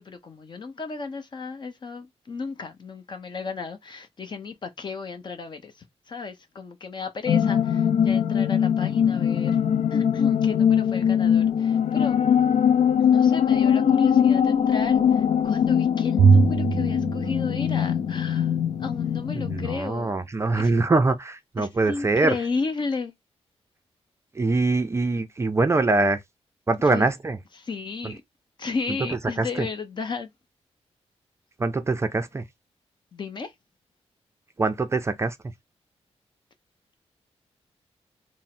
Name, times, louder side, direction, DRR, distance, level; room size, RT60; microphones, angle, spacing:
voice 1, 0.0-9.6 9.9-12.2 13.0-20.3 20.5-20.7 21.6-23.1 26.8-27.1 27.6-28.2 28.6-30.3 33.1-33.5, left 4 dB, 45° left, 0.8 m, -34 dB
sound 1, 7.3-19.8, left 8 dB, 70° left, 0.4 m, -21 dB
Bowed string instrument, 16.2-18.6, right 6 dB, 80° right, 0.4 m, -22 dB
voice 2, 19.3-22.4 24.3-26.2 26.7-27.4 28.0-28.1 29.4-29.7 31.6-32.5 34.6-35.4, right 3 dB, 25° right, 0.4 m, -23 dB
3.5 x 2.0 x 4.2 m
wide cardioid pair, 130°, 11 cm